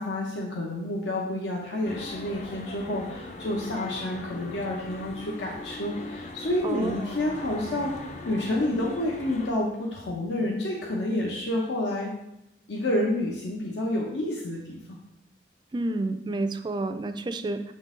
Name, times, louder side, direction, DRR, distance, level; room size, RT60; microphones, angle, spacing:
voice 1, 0.0-12.1 12.7-14.8, left 1 dB, 80° left, -2 dB, 0.8 m, -29 dB
sound 1, 1.8-9.5, left 2 dB, 40° left, 0.5 m, -40 dB
voice 2, 6.6-7.1 15.7-17.7, right 2 dB, 25° right, 8 dB, 0.3 m, -30 dB
7.0 x 3.8 x 3.7 m, 0.84 s
head